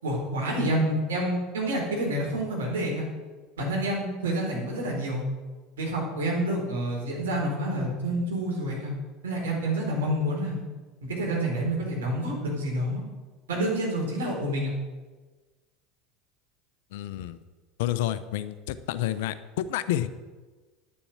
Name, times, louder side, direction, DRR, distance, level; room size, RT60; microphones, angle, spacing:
voice 1, 0.0-3.0 3.6-5.2 5.8-8.9 9.2-10.6 11.1-13.0 13.5-14.7, right 1 dB, 80° right, -2 dB, 4.3 m, -28 dB
voice 2, 16.9-17.4 17.8-20.1, left 12 dB, 70° left, 14 dB, 0.7 m, -29 dB
10.5 x 7.0 x 8.7 m, 1.3 s
hypercardioid pair, 75°, 0 cm